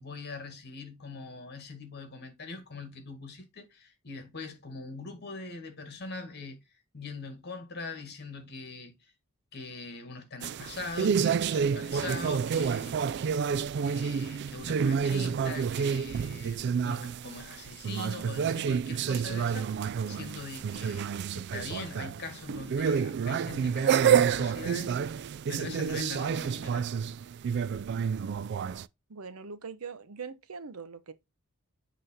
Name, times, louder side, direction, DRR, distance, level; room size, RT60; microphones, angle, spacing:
voice 1, 0.0-6.6 6.9-8.9 9.5-13.0 13.8-25.0 25.5-26.9, left 3 dB, 50° left, 1.9 m, -42 dB
sound 1, 10.4-28.9, right 7 dB, 50° right, 0.3 m, -29 dB
voice 2, 28.1-28.4 29.1-31.1, right 5 dB, 80° right, 0.8 m, -42 dB
7.8 x 3.2 x 5.4 m
head